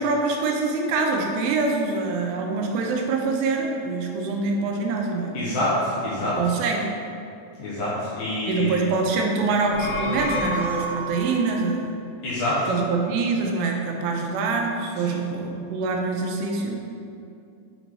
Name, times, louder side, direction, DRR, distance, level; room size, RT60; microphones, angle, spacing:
voice 1, 0.0-5.5 6.2-7.0 8.5-11.9 12.7-16.8, right 3 dB, 85° right, 1 dB, 3.2 m, -25 dB
voice 2, 5.3-6.4 7.6-8.8 12.2-12.7 15.0-15.2, left 1 dB, 80° left, -7 dB, 2.1 m, -26 dB
sound 1, 9.5-11.4, equal, 50° left, 2.3 m, -29 dB
8.4 x 4.0 x 4.5 m, 2.6 s
omnidirectional pair, 5.5 m